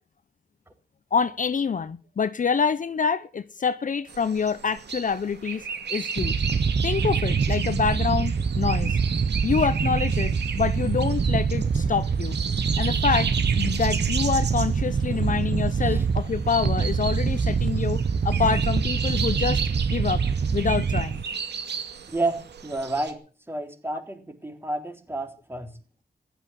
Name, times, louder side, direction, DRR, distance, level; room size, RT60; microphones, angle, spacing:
voice 1, 1.1-6.4 6.8-9.0 9.4-12.4 12.8-19.6 19.9-20.2 20.5-21.2, left 6 dB, 50° left, 0.8 m, -26 dB
sound 1, 4.1-23.1, right 6 dB, 90° right, 2.4 m, -35 dB
sound 2, 6.2-21.2, right 5 dB, 50° right, 1.0 m, -25 dB
voice 2, 22.1-23.2 23.5-25.7, right 2 dB, 15° right, 3.7 m, -30 dB
15.5 x 12.5 x 7.5 m
wide cardioid pair, 105°, 17 cm